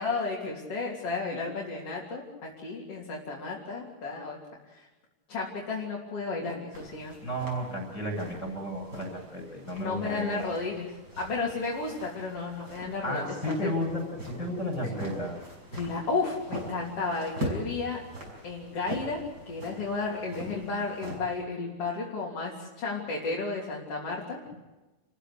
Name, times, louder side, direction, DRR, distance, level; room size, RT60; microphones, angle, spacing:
voice 1, 0.0-4.4 4.7-4.9 5.3-7.2 9.8-13.7 14.9-15.0 15.7-18.0 18.4-24.4, left 4 dB, 55° left, -3 dB, 4.1 m, -33 dB
sound 1, 6.7-21.2, equal, 35° right, 6.4 m, -42 dB
voice 2, 7.2-10.4 13.0-15.4, equal, 30° left, -6 dB, 7.3 m, -33 dB
29.0 x 15.0 x 8.4 m, 1.1 s
omnidirectional pair, 3.3 m